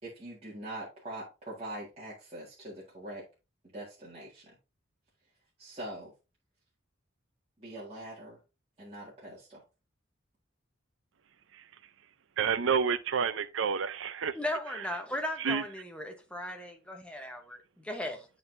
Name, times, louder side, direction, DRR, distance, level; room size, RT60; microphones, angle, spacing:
voice 1, 0.0-3.2 3.7-4.6 5.6-6.1 7.6-8.4 8.8-9.6, right 1 dB, 30° right, 1.8 m, -43 dB
voice 2, 12.4-14.4 15.4-15.6, right 6 dB, 70° right, 0.5 m, -29 dB
voice 3, 14.3-18.3, left 1 dB, 5° left, 0.9 m, -37 dB
10.5 x 4.0 x 2.6 m
head